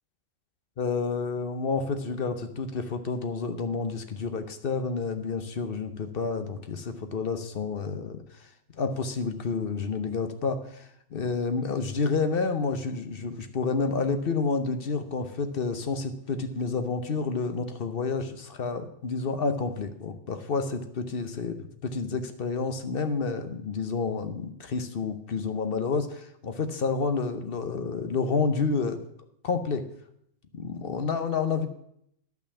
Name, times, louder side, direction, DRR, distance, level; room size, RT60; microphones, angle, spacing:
voice 1, 0.8-8.5 8.7-29.0 29.4-29.8 30.5-31.7, left 4 dB, 50° left, 9 dB, 0.9 m, -29 dB
10.5 x 5.9 x 7.0 m, 0.73 s
omnidirectional pair, 1.4 m